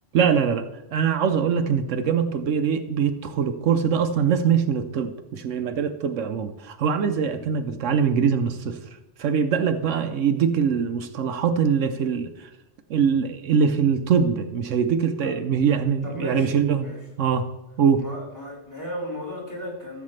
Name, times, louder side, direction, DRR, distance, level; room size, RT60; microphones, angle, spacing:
voice 1, 0.1-8.8 9.2-12.5 12.9-16.9 17.2-17.5 17.8-18.0, right 7 dB, 75° right, 8 dB, 1.0 m, -23 dB
voice 2, 16.0-17.0 18.0-20.0, left 1 dB, 15° left, -4 dB, 3.8 m, -35 dB
14.5 x 7.3 x 3.2 m, 1.0 s
omnidirectional pair, 1.3 m